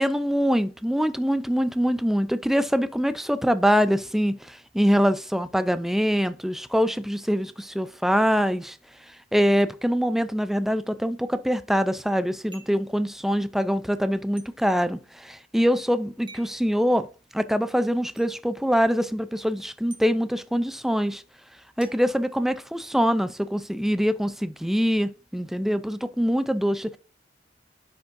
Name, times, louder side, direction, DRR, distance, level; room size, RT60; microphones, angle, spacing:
voice 1, 0.0-8.8 9.3-17.1 17.3-21.2 21.8-27.0, equal, ahead, 0.4 m, -24 dB
sound 1, 12.5-12.9 14.4-14.5 16.3-16.6 18.2-18.3 19.9-20.1 21.8-22.9, right 4 dB, 25° right, 1.6 m, -49 dB
10.0 x 5.3 x 2.6 m
head